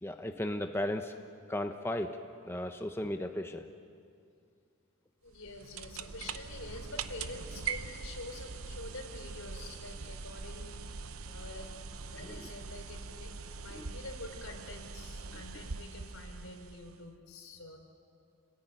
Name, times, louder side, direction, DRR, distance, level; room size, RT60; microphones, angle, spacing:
voice 1, 0.0-1.1 1.5-2.2 2.5-3.7 12.2-12.5 13.7-13.9, left 1 dB, 10° left, 5 dB, 0.9 m, -35 dB
voice 2, 5.2-11.7 12.1-17.8, left 2 dB, 75° left, 3 dB, 4.0 m, -47 dB
sound 1, 5.3-17.1, right 5 dB, 85° right, 0.8 m, -42 dB
28.0 x 20.0 x 9.0 m, 2.3 s
head